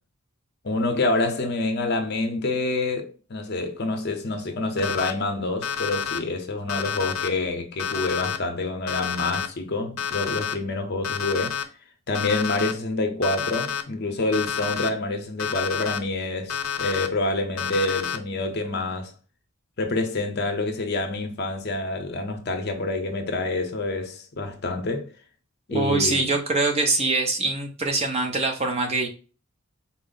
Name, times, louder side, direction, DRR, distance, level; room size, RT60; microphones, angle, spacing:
voice 1, 0.6-11.5 12.1-19.1 19.8-25.1 25.7-26.3, left 2 dB, 50° left, 0.6 m, -27 dB
Alarm, 4.8-5.1 5.6-6.2 6.7-7.3 7.8-8.4 8.9-9.5 10.0-10.5 11.0-11.6 12.1-12.7 13.2-13.8 14.3-14.9 15.4-16.0 16.5-17.1 17.6-18.2, left 7 dB, 90° left, 0.5 m, -29 dB
voice 2, 25.7-29.1, right 3 dB, 30° right, 0.6 m, -23 dB
4.3 x 2.0 x 3.8 m
head